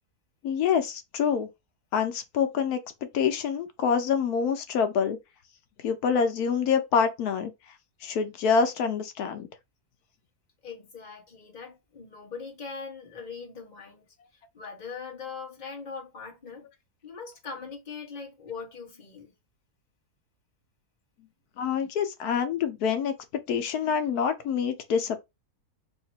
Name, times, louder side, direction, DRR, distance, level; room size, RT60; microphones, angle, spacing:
voice 1, 0.4-1.5 1.9-2.8 3.1-5.2 5.8-7.5 8.0-9.5 21.6-23.1 23.5-25.2, left 6 dB, 80° left, 1.2 m, -26 dB
voice 2, 10.6-14.0 14.5-16.7 17.0-19.3, left 5 dB, 30° left, 1.2 m, -41 dB
3.1 x 2.9 x 4.2 m
omnidirectional pair, 1.6 m